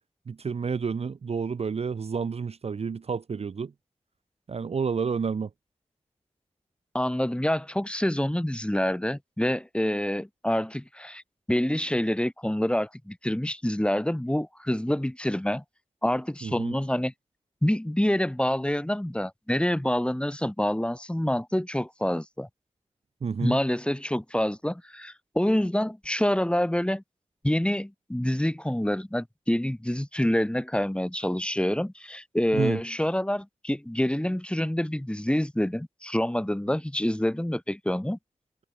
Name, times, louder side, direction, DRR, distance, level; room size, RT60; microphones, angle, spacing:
voice 1, 0.3-3.7 4.5-5.5 16.4-16.8 23.2-23.6 32.5-32.8, right 5 dB, 55° right, 0.5 m, -30 dB
voice 2, 6.9-11.2 11.5-15.6 16.0-17.1 17.6-22.5 23.4-27.0 27.4-38.2, left 1 dB, 10° left, 1.7 m, -27 dB
wide cardioid pair, 70°, 12 cm